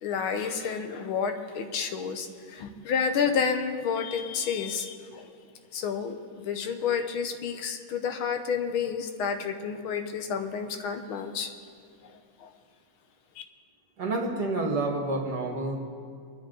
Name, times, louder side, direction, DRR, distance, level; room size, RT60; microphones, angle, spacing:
voice 1, 0.0-5.3 5.7-11.5 12.0-12.5, left 6 dB, 80° left, 6 dB, 1.8 m, -30 dB
voice 2, 14.0-15.8, right 2 dB, 50° right, 1 dB, 2.4 m, -29 dB
24.0 x 10.0 x 3.9 m, 2.4 s
omnidirectional pair, 2.3 m